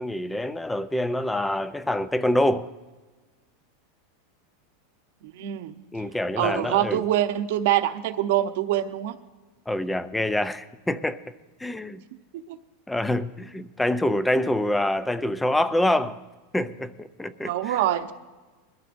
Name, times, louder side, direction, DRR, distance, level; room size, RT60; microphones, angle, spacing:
voice 1, 0.0-2.7 5.9-7.0 9.7-11.2 11.6-12.0 12.9-16.2 16.5-17.5, left 1 dB, 5° left, 14 dB, 0.4 m, -26 dB
voice 2, 5.2-5.7 6.4-9.1 12.3-12.6 17.4-18.1, right 12 dB, 60° right, 8 dB, 0.9 m, -25 dB
22.5 x 13.5 x 2.6 m, 1.3 s
supercardioid pair, 170°, 0 cm